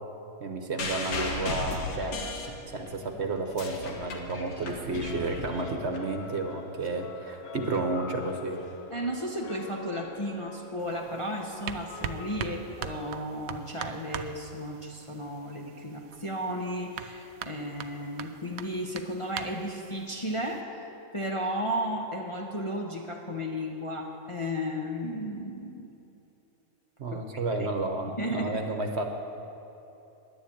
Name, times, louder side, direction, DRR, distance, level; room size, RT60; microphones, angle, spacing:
voice 1, 0.4-2.2 2.5-8.6 27.0-29.0, right 2 dB, 50° right, 4 dB, 1.2 m, -31 dB
sound 1, 0.8-3.0 3.4-6.0 6.9-7.0, left 3 dB, 85° left, 1.8 m, -35 dB
sound 2, 5.0-13.1, left 2 dB, 45° left, 1.4 m, -44 dB
voice 2, 8.9-20.6 21.1-25.9 27.1-27.7 28.2-28.6, equal, 25° left, 0 dB, 0.8 m, -34 dB
sound 3, 10.8-20.6, right 8 dB, 75° right, 1.1 m, -42 dB
10.5 x 10.5 x 8.6 m, 2.9 s
omnidirectional pair, 1.5 m